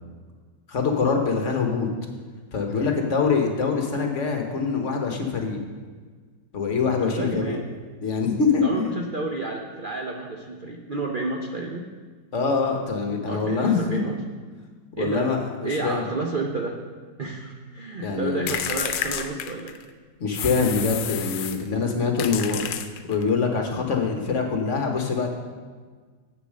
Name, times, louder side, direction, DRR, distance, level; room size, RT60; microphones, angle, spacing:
voice 1, 0.7-1.9 2.5-5.6 6.5-7.6 8.0-8.9 12.3-14.1 15.0-16.1 18.0-18.5 20.2-22.6 23.1-25.3, left 5 dB, 45° left, 3 dB, 1.2 m, -24 dB
voice 2, 7.0-7.7 8.6-11.9 13.3-14.2 14.9-15.3 15.6-16.8 17.2-19.8, right 3 dB, 85° right, 0 dB, 0.4 m, -31 dB
sound 1, 18.5-19.9 20.3-21.7 22.2-23.3, left 9 dB, 75° left, 1.3 m, -30 dB
8.1 x 6.8 x 6.4 m, 1.5 s
omnidirectional pair, 2.0 m